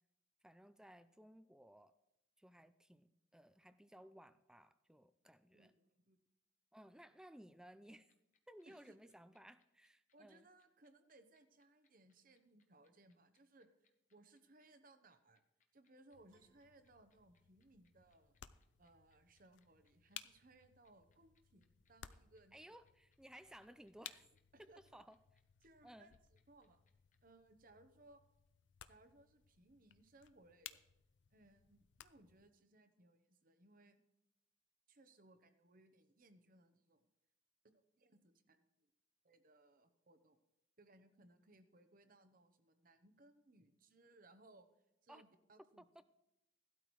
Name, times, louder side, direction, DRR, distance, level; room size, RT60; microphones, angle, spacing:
voice 1, 0.4-1.9 2.4-5.7 6.7-8.1 8.5-10.4 22.5-24.3 24.6-25.2 25.8-26.1 45.1-45.2 45.9-46.0, right 1 dB, 5° right, 12 dB, 0.3 m, -59 dB
voice 2, 5.5-6.2 8.7-9.1 10.1-13.7 14.1-15.4 15.7-18.4 18.8-22.8 24.5-25.0 25.6-26.8 27.2-28.2 28.9-30.8 31.3-34.0 34.9-37.0 37.6-38.9 39.2-40.4 40.8-44.7 45.0-46.0, right 2 dB, 45° right, 9 dB, 0.8 m, -66 dB
sound 1, 7.8-27.2, left 7 dB, 40° left, 0.9 m, -81 dB
sound 2, 16.1-32.5, left 11 dB, 65° left, 0.4 m, -60 dB
Piano, 16.3-17.8, right 5 dB, 75° right, 0.9 m, -81 dB
16.5 x 12.0 x 3.1 m, 0.89 s
head